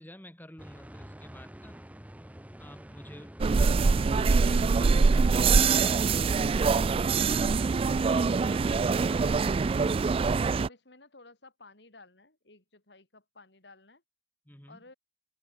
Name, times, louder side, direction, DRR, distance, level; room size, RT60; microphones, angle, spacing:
voice 1, 0.0-1.8 2.6-7.2 8.1-9.3 14.4-14.8, left 1 dB, 10° left, 3.4 m, -51 dB
sound 1, 0.6-9.8, equal, 10° right, 1.0 m, -47 dB
voice 2, 3.1-3.6 5.3-5.6 9.1-9.5 10.6-14.0 14.7-14.9, left 3 dB, 75° left, 4.4 m, -55 dB
sound 2, 3.4-10.7, right 4 dB, 30° right, 0.3 m, -24 dB
sound 3, 3.7-8.7, right 1 dB, 50° right, 3.1 m, -51 dB
head